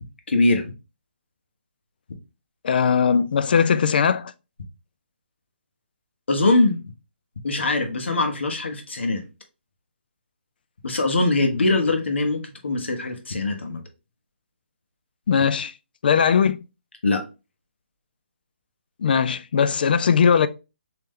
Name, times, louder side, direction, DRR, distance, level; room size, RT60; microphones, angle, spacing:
voice 1, 0.3-0.7 6.3-6.8 7.4-9.2 10.8-13.8 17.0-17.2, left 2 dB, 75° left, 1.1 m, -22 dB
voice 2, 2.6-4.3 15.3-15.7 16.0-16.6 19.0-20.5, left 6 dB, 50° left, 0.4 m, -19 dB
3.2 x 3.0 x 3.6 m
hypercardioid pair, 160°, 6 cm